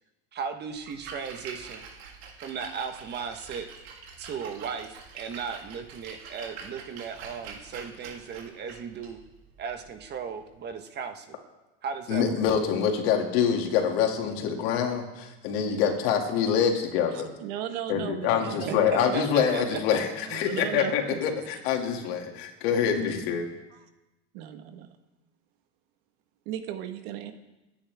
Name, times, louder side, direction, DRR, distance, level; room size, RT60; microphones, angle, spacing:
voice 1, 0.3-1.8 2.4-3.7 4.2-9.2 9.6-11.4 11.8-12.4 18.4-19.8, right 6 dB, 35° right, 7 dB, 1.3 m, -36 dB
Splash splatter, 0.7-10.7, right 5 dB, 80° right, 3.1 m, -45 dB
voice 2, 12.1-17.3 17.9-23.5, left 7 dB, 70° left, 2 dB, 2.6 m, -25 dB
voice 3, 17.1-19.3 20.3-21.2 23.7-23.8 24.3-25.0 26.5-27.3, right 10 dB, 65° right, 7 dB, 1.6 m, -36 dB
24.5 x 10.0 x 3.6 m, 1.0 s
supercardioid pair, 135°, 31 cm